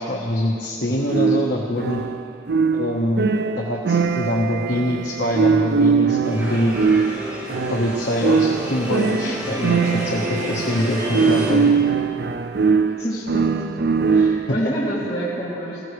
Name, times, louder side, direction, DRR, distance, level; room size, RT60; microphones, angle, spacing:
voice 1, 0.0-2.0 2.7-3.3 3.6-6.7 7.7-9.8 10.0-11.9, left 1 dB, 70° left, -3 dB, 1.3 m, -24 dB
sound 1, 1.1-14.7, right 5 dB, 65° right, 0.4 m, -21 dB
sound 2, 6.2-11.5, equal, 20° right, 4.3 m, -30 dB
voice 2, 13.0-13.5 14.1-15.8, equal, 35° left, -10 dB, 2.6 m, -27 dB
20.5 x 16.0 x 3.3 m, 2.6 s
head